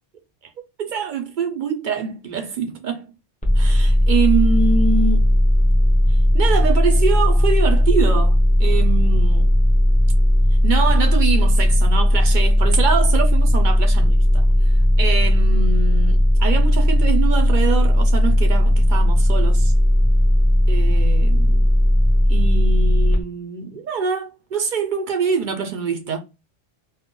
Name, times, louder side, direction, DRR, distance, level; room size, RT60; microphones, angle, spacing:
voice 1, 0.8-3.1 3.6-5.4 6.1-9.5 10.6-14.7 15.0-19.7 20.7-21.7 22.3-26.2, right 5 dB, 60° right, 0.5 m, -25 dB
sound 1, 3.4-23.2, equal, 10° left, 0.4 m, -16 dB
2.3 x 2.1 x 3.7 m
omnidirectional pair, 1.2 m